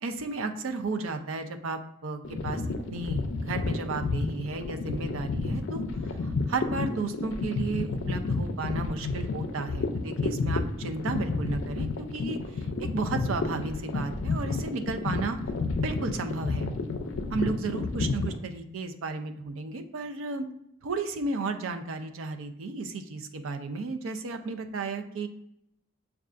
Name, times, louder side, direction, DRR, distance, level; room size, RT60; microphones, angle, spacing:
voice 1, 0.0-2.6 2.9-5.8 6.2-15.4 15.8-16.7 17.3-20.5 20.8-25.3, right 3 dB, 75° right, 7 dB, 0.4 m, -33 dB
sound 1, 2.2-18.4, left 3 dB, 65° left, 0.4 m, -31 dB
6.4 x 2.3 x 2.4 m, 0.80 s
head